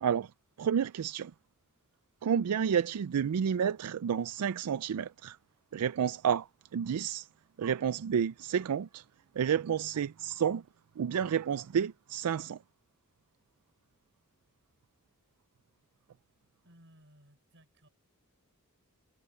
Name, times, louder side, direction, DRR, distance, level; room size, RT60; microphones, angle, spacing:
voice 1, 0.6-1.3 2.2-5.4 5.7-6.5 6.7-7.3 7.6-9.0 9.4-10.6 11.0-12.6, right 8 dB, 85° right, 0.4 m, -30 dB
voice 2, 16.6-17.9, equal, 55° right, 7.0 m, -60 dB
head